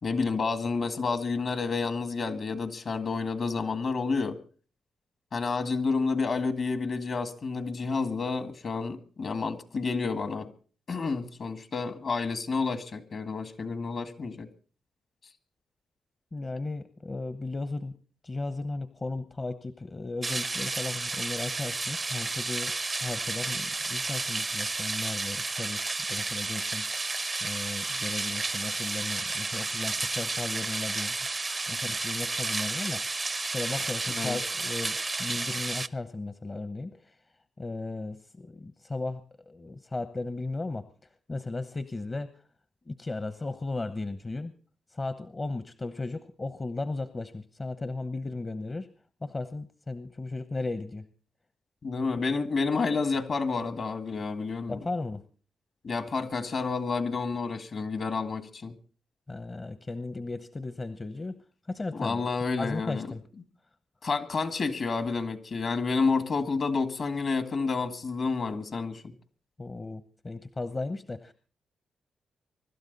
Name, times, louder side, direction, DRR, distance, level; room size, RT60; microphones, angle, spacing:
voice 1, 0.0-4.4 5.3-10.5 10.9-14.5 34.1-34.4 51.8-54.8 55.8-58.7 61.9-63.1 64.0-69.1, left 4 dB, 60° left, 2.0 m, -30 dB
voice 2, 16.3-18.0 18.2-22.7 23.0-27.0 27.4-31.2 31.7-33.0 33.5-37.2 37.6-40.9 41.3-42.3 42.9-44.5 44.9-48.9 49.2-51.1 54.7-55.2 59.3-61.4 61.7-62.3 62.6-63.2 66.0-66.1 69.6-71.3, left 3 dB, 35° left, 1.0 m, -36 dB
sound 1, 20.2-35.9, right 3 dB, 35° right, 0.6 m, -32 dB
24.0 x 12.5 x 4.1 m
supercardioid pair, 50°, 0 cm